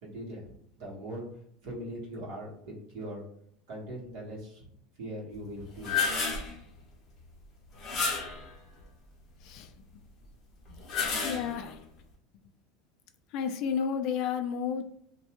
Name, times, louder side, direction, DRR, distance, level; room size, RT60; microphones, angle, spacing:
voice 1, 0.0-1.3 1.6-3.2 3.7-4.7 5.0-6.0, right 1 dB, 60° right, -3 dB, 1.1 m, -40 dB
sound 1, 5.6-6.5 7.8-8.5 10.7-11.7, left 5 dB, 30° left, 0.7 m, -31 dB
voice 2, 11.2-11.8 13.3-14.8, left 7 dB, 50° left, 7 dB, 0.3 m, -31 dB
2.5 x 2.2 x 2.8 m, 0.67 s
supercardioid pair, 155°, 0 cm